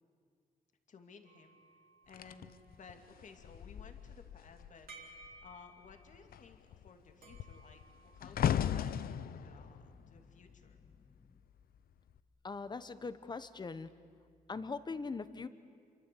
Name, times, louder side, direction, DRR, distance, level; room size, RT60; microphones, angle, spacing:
voice 1, 0.9-1.6 2.1-4.9 5.4-10.8, left 5 dB, 55° left, 6 dB, 2.5 m, -57 dB
sound 1, 1.2-2.9 4.9-6.1 7.2-8.7, right 3 dB, 75° right, 3.6 m, -58 dB
sound 2, 2.1-4.9 5.2-5.5 5.8-11.2 11.9-12.2, left 9 dB, 80° left, 0.8 m, -38 dB
voice 2, 12.4-13.9 14.5-15.5, left 4 dB, 30° left, 13 dB, 1.2 m, -41 dB
28.0 x 24.0 x 8.5 m, 2.2 s
wide cardioid pair, 120°, 15 cm